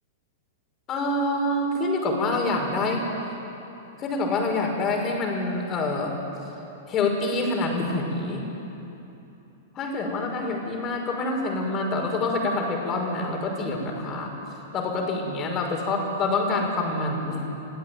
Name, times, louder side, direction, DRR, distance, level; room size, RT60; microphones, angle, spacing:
voice 1, 0.9-3.0 4.0-6.2 6.9-8.5 9.7-14.3 14.7-17.5, left 2 dB, 30° left, 2 dB, 5.7 m, -26 dB
30.0 x 16.5 x 9.5 m, 3.0 s
figure-of-eight pair, 100°, 0 cm